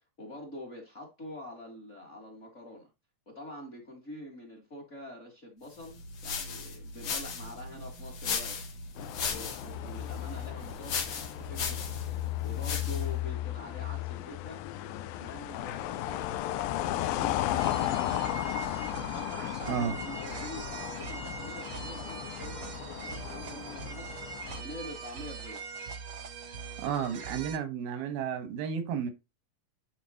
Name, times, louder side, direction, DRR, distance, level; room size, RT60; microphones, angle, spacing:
voice 1, 0.2-2.9 3.2-8.6 9.2-12.0 12.4-14.6 15.1-18.7 19.1-24.1 24.5-25.6, left 1 dB, 30° left, 1.5 m, -46 dB
sound 1, 5.8-13.2, left 5 dB, 70° left, 1.2 m, -37 dB
sound 2, 9.0-24.6, left 14 dB, 85° left, 2.4 m, -35 dB
sound 3, 17.6-27.6, right 5 dB, 60° right, 1.2 m, -42 dB
voice 2, 26.8-29.1, right 7 dB, 90° right, 3.1 m, -32 dB
10.5 x 4.1 x 2.9 m
omnidirectional pair, 4.1 m